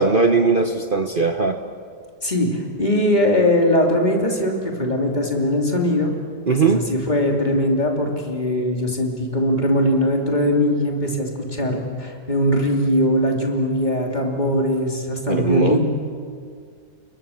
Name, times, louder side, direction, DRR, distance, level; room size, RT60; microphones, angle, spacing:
voice 1, 0.0-1.6 6.5-6.9 15.3-15.8, right 4 dB, 40° right, 6 dB, 0.8 m, -19 dB
voice 2, 2.2-6.1 6.5-15.8, left 1 dB, 20° left, 1 dB, 3.1 m, -20 dB
29.5 x 21.5 x 7.2 m, 2.1 s
omnidirectional pair, 2.2 m